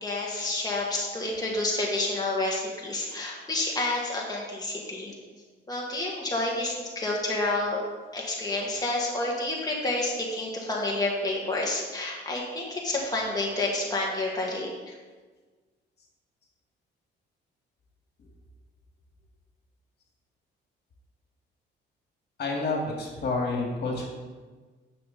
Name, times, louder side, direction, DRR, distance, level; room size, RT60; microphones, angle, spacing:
voice 1, 0.0-5.1 5.7-7.8 8.1-15.0, left 2 dB, 20° left, -3 dB, 1.7 m, -29 dB
voice 2, 22.4-24.1, left 3 dB, 55° left, -1 dB, 2.3 m, -29 dB
9.1 x 6.7 x 4.1 m, 1.4 s
cardioid pair, 90°, 20 cm